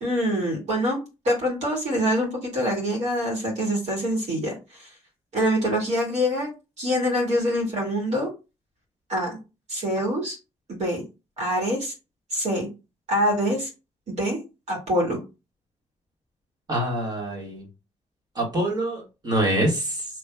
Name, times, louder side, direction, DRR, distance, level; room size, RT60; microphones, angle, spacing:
voice 1, 0.0-1.0 1.2-4.9 5.3-6.5 6.8-8.3 9.1-9.4 9.7-10.4 10.7-11.0 11.4-11.9 12.3-12.7 13.1-13.7 14.1-14.4 14.7-15.2, equal, 65° right, -2 dB, 2.1 m, -25 dB
voice 2, 16.7-17.6 18.4-20.1, right 1 dB, 35° right, 0 dB, 1.7 m, -25 dB
5.1 x 3.2 x 2.3 m, 0.28 s
wide cardioid pair, 170°, 12 cm